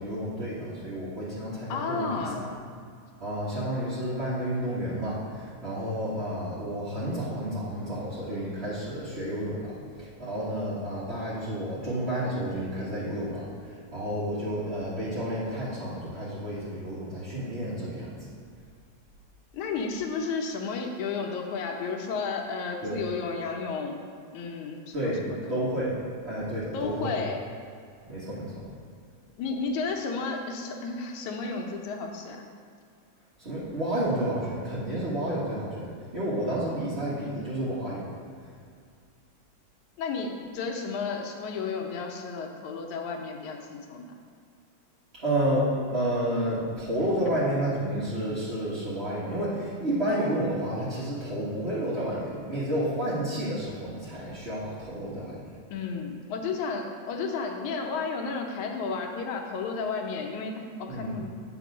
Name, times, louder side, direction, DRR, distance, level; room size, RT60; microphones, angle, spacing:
voice 1, 0.0-2.5 3.2-18.2 22.8-23.0 24.9-26.0 26.2-27.1 28.1-28.7 33.4-38.1 45.1-55.5 60.9-61.2, right 1 dB, 35° right, -10 dB, 0.9 m, -30 dB
voice 2, 1.7-2.5 19.5-24.0 24.3-25.4 26.7-27.4 29.4-32.5 40.0-44.2 55.7-61.3, left 4 dB, 80° left, 2 dB, 2.2 m, -32 dB
8.1 x 4.6 x 6.1 m, 2.2 s
omnidirectional pair, 3.4 m